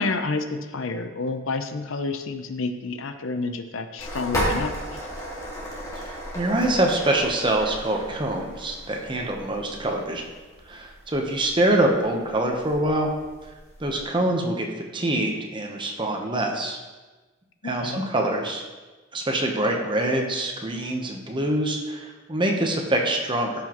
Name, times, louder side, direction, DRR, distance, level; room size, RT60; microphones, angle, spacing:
voice 1, 0.0-4.7 17.6-18.0, left 3 dB, 70° left, 8 dB, 0.6 m, -29 dB
sound 1, 4.0-14.0, equal, 15° left, 2.0 m, -35 dB
voice 2, 5.9-10.2 10.7-13.1 13.8-14.7 14.9-16.8 17.6-18.6 19.1-23.5, right 1 dB, 25° right, 1 dB, 0.9 m, -25 dB
13.5 x 6.1 x 3.0 m, 1.2 s
head